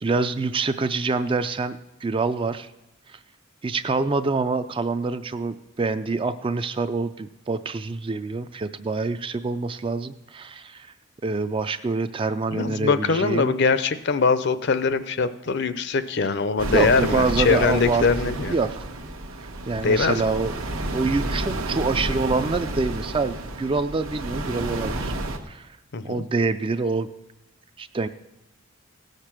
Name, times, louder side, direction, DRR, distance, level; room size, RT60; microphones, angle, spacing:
voice 1, 0.0-2.7 3.1-3.2 3.6-10.9 11.2-13.5 16.7-18.8 19.7-20.5 20.9-25.1 25.5-25.8 26.0-27.1 27.8-28.1, right 3 dB, 25° right, 11 dB, 0.3 m, -26 dB
voice 2, 12.5-18.5 19.8-20.2 25.9-26.2, left 4 dB, 55° left, 13 dB, 0.6 m, -22 dB
sound 1, 16.6-25.4, right 2 dB, 80° right, 1.1 m, -30 dB
16.5 x 6.6 x 5.9 m, 0.96 s
head